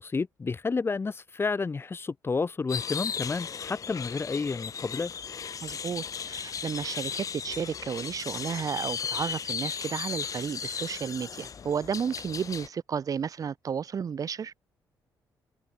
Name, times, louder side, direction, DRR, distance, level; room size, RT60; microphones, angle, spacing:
voice 1, 0.0-5.1, left 4 dB, 30° left, 6.4 m, -30 dB
sound 1, 2.7-12.7, left 7 dB, 45° left, 1.7 m, -36 dB
voice 2, 5.6-14.5, right 7 dB, 50° right, 3.3 m, -32 dB
cardioid pair, 90°, 8 cm